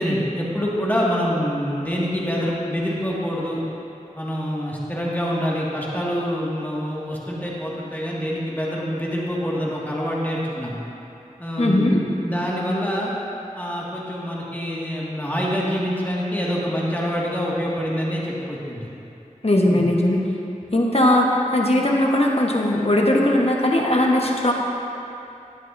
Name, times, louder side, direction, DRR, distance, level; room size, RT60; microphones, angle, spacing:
voice 1, 0.0-3.6 4.1-10.8 11.4-13.1 13.5-18.9 19.6-19.8, equal, 15° left, -6 dB, 1.9 m, -26 dB
voice 2, 11.6-12.0 19.4-20.2 20.7-24.5, left 1 dB, 50° left, -1 dB, 1.2 m, -19 dB
13.0 x 10.5 x 2.6 m, 2.8 s
wide cardioid pair, 45°, 14 cm